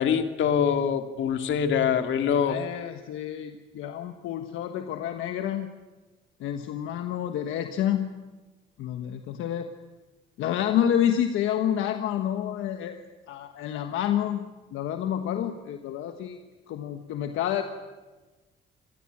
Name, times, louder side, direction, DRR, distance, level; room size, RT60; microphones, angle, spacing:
voice 1, 0.0-2.6, left 7 dB, 75° left, 8 dB, 2.2 m, -24 dB
voice 2, 2.4-5.7 6.4-8.1 8.8-9.7 10.4-16.4 16.7-17.6, left 10 dB, 90° left, 7 dB, 1.4 m, -29 dB
26.0 x 18.5 x 8.6 m, 1.2 s
cardioid pair, 90°, 20 cm